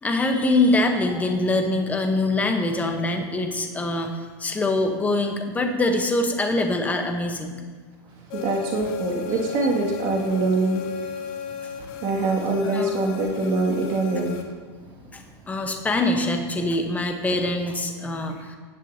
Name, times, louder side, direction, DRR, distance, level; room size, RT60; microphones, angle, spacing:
voice 1, 0.0-7.5 12.6-12.9 15.1-15.2 15.5-18.6, left 2 dB, 10° left, 4 dB, 1.1 m, -24 dB
sound 1, 8.3-14.4, left 7 dB, 55° left, 1.4 m, -35 dB
voice 2, 8.3-10.8 12.0-14.4, right 2 dB, 40° right, -2 dB, 2.4 m, -24 dB
17.5 x 7.2 x 2.9 m, 1.5 s
supercardioid pair, 130°, 13 cm